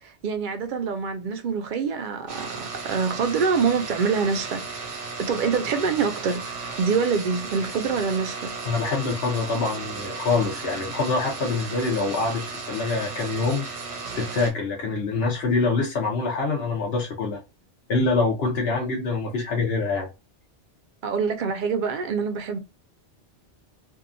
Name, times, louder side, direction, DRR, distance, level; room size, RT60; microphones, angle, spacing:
voice 1, 0.0-4.8 5.2-6.4 6.8-8.5 21.0-22.6, right 5 dB, 60° right, 0.5 m, -25 dB
sound 1, 2.3-14.5, right 4 dB, 85° right, 1.1 m, -35 dB
voice 2, 8.6-13.6 14.1-17.4 17.9-20.1, left 3 dB, 65° left, 0.9 m, -25 dB
2.7 x 2.3 x 2.4 m
omnidirectional pair, 1.2 m